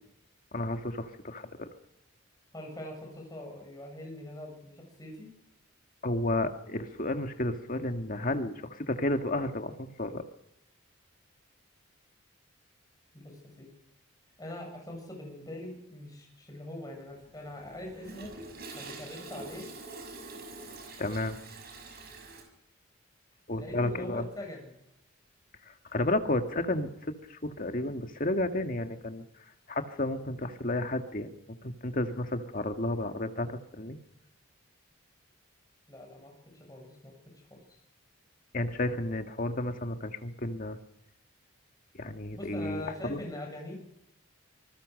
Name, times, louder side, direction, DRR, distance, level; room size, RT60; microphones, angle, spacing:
voice 1, 0.5-1.7 6.0-10.2 21.0-21.4 23.5-24.3 25.7-26.9 27.3-29.2 29.7-34.0 38.5-40.8 41.9-43.2, left 1 dB, 40° left, 6 dB, 1.8 m, -32 dB
voice 2, 2.5-5.3 13.1-13.7 14.4-18.3 18.7-19.7 23.5-24.7 35.9-37.1 37.5-37.6 42.3-43.8, left 1 dB, 20° left, 1 dB, 7.7 m, -42 dB
Toilet flush, 17.2-22.4, right 3 dB, 50° right, 6.1 m, -45 dB
26.0 x 20.5 x 6.5 m, 0.80 s
head